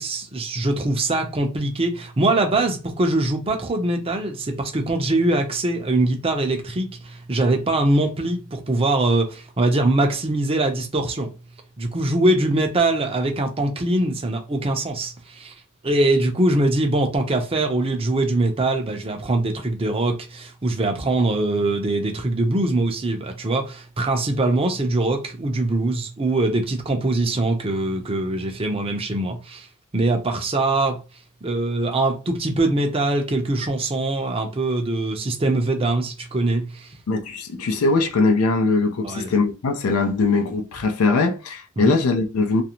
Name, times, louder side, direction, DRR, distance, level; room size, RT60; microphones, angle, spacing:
voice 1, 0.0-11.3 11.8-15.5 15.8-29.7 29.9-31.0 31.4-36.9 39.0-39.3 41.8-42.0, right 2 dB, 25° right, 0.5 m, -22 dB
voice 2, 37.1-42.6, left 3 dB, 80° left, 0.5 m, -21 dB
2.4 x 2.0 x 2.9 m
head